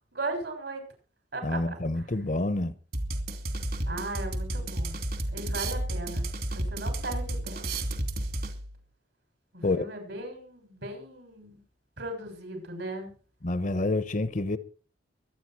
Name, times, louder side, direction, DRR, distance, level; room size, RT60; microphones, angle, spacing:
voice 1, 0.1-0.8 1.3-2.1 3.9-5.0 5.3-7.7 9.5-11.6 12.0-13.1, right 2 dB, 75° right, 6.7 m, -37 dB
voice 2, 1.4-2.7 9.6-9.8 13.4-14.6, left 2 dB, 45° left, 1.0 m, -28 dB
sound 1, 2.9-8.8, right 1 dB, 55° right, 2.6 m, -32 dB
23.5 x 9.2 x 4.6 m
head